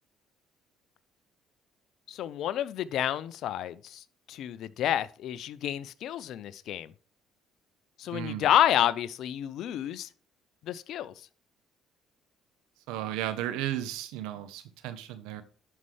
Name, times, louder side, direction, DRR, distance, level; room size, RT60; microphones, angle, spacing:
voice 1, 2.1-6.9 8.0-10.1 10.6-11.1, left 11 dB, 70° left, 0.6 m, -29 dB
voice 2, 8.1-8.5 12.9-15.4, right 12 dB, 90° right, 0.9 m, -34 dB
11.0 x 5.5 x 3.3 m
supercardioid pair, 80°, 0 cm